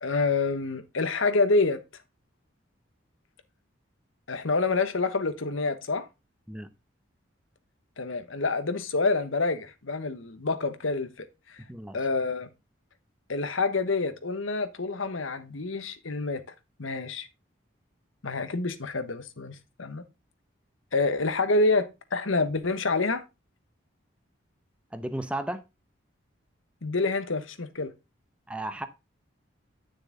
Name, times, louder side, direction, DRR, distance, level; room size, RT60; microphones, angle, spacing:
voice 1, 0.0-1.8 4.3-6.1 8.0-11.1 11.9-12.5 13.3-16.4 16.8-17.3 18.2-20.0 20.9-23.2 26.8-27.9, left 3 dB, 85° left, 1.2 m, -27 dB
voice 2, 24.9-25.6 28.5-28.9, right 1 dB, 5° right, 0.8 m, -34 dB
9.8 x 6.5 x 3.8 m
head